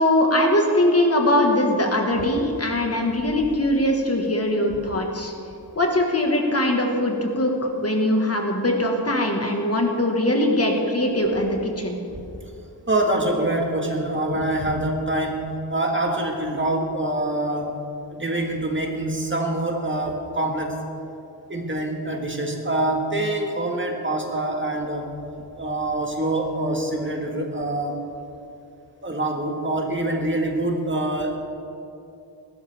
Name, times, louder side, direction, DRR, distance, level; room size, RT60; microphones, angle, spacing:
voice 1, 0.0-5.3 5.7-12.0, left 1 dB, 35° left, 1 dB, 1.6 m, -21 dB
voice 2, 12.9-17.7 18.1-20.8 21.5-25.1 25.6-28.0 29.0-31.4, right 1 dB, 25° right, 1 dB, 1.6 m, -25 dB
20.5 x 12.5 x 3.5 m, 2.7 s
wide cardioid pair, 120°, 42 cm